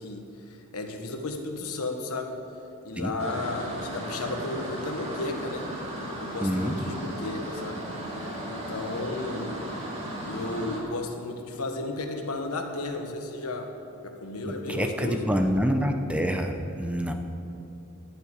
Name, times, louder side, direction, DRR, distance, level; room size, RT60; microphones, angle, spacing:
voice 1, 0.0-2.3 2.8-5.7 6.2-7.8 8.4-9.6 10.2-13.7 14.0-15.3, left 2 dB, 80° left, 4 dB, 1.3 m, -33 dB
sound 1, 3.2-10.8, right 1 dB, 30° right, 2.3 m, -36 dB
voice 2, 6.4-6.8 14.7-17.1, equal, 5° right, 5 dB, 0.7 m, -26 dB
11.5 x 8.7 x 8.4 m, 2.8 s
head